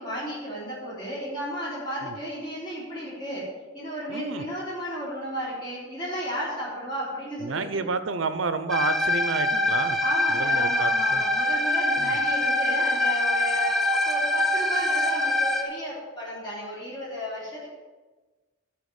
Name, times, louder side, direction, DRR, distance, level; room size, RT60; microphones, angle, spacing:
voice 1, 0.0-3.5 3.7-7.8 10.0-17.7, equal, 25° left, -8 dB, 3.7 m, -34 dB
voice 2, 4.1-4.4 7.4-10.0 10.3-11.2 12.0-12.2, right 4 dB, 80° right, 11 dB, 0.7 m, -30 dB
sound 1, 8.7-15.6, left 2 dB, ahead, 1.0 m, -24 dB
11.5 x 4.7 x 8.2 m, 1.3 s
head